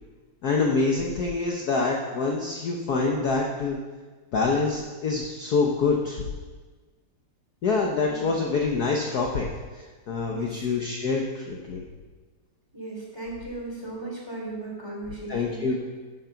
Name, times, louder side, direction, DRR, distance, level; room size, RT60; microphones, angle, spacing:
voice 1, 0.4-3.8 4.3-6.2 7.6-9.5 9.7-11.8 15.3-15.8, left 4 dB, 55° left, 0 dB, 1.3 m, -26 dB
voice 2, 10.3-10.7 12.7-15.8, right 2 dB, 10° right, -3 dB, 2.8 m, -36 dB
11.0 x 7.9 x 5.8 m, 1.4 s
omnidirectional pair, 2.4 m